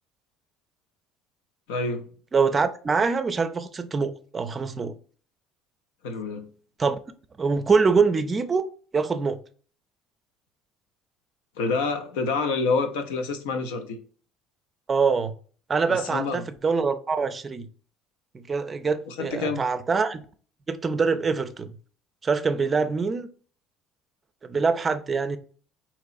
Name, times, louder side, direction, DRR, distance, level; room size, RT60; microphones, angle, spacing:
voice 1, 1.7-2.1 6.0-6.5 11.6-14.0 15.9-16.4 19.1-19.7, left 4 dB, 90° left, 0.5 m, -27 dB
voice 2, 2.3-4.9 6.8-7.0 7.4-8.7 8.9-9.4 14.9-15.3 15.7-17.7 18.3-20.2 20.7-21.8 22.2-23.3 24.4-25.4, right 5 dB, 30° right, 0.4 m, -24 dB
3.8 x 2.9 x 2.5 m
supercardioid pair, 85°, 0 cm